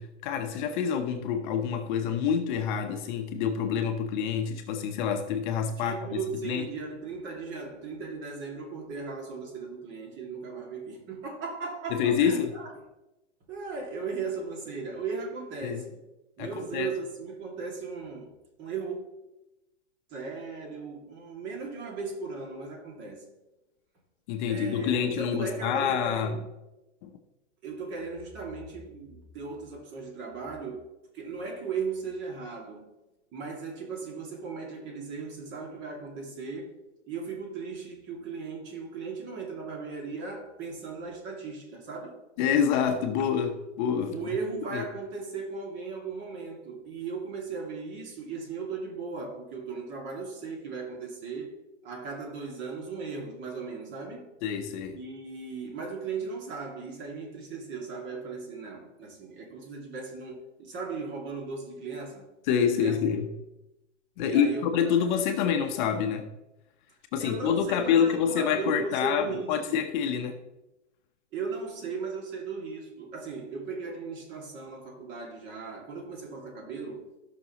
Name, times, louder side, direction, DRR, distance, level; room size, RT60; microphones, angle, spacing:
voice 1, 0.0-6.0 6.4-6.7 11.9-12.5 15.6-15.8 16.4-16.9 24.3-26.4 27.0-27.1 42.4-44.2 44.7-44.8 54.4-55.0 62.5-63.3 64.2-66.3 67.1-70.4, left 7 dB, 40° left, 0.9 m, -27 dB
voice 2, 5.8-12.7 13.5-16.0 16.4-18.3 18.6-19.0 20.1-23.2 24.5-26.4 27.6-32.9 33.3-36.7 37.0-42.2 44.1-51.5 51.8-54.3 54.9-62.3 62.8-63.0 64.2-65.1 65.4-65.5 67.2-69.8 71.3-77.0, right 4 dB, 30° right, 2.3 m, -37 dB
15.5 x 6.2 x 3.0 m
hypercardioid pair, 140°, 36 cm